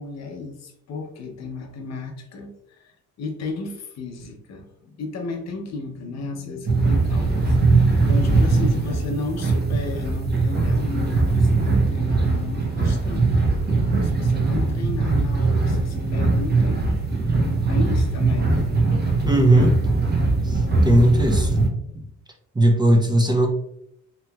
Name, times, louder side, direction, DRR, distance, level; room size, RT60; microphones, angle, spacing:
voice 1, 0.0-2.9 3.2-13.3 14.0-16.9 17.4-18.7, left 3 dB, 60° left, 3 dB, 0.7 m, -33 dB
sound 1, 6.7-21.7, right 3 dB, 35° right, 0.8 m, -21 dB
voice 2, 19.2-19.8 20.4-21.7 21.9-22.0 22.6-23.5, right 1 dB, 15° right, 1 dB, 0.5 m, -18 dB
2.9 x 2.7 x 2.3 m, 0.74 s
cardioid pair, 90°, 30 cm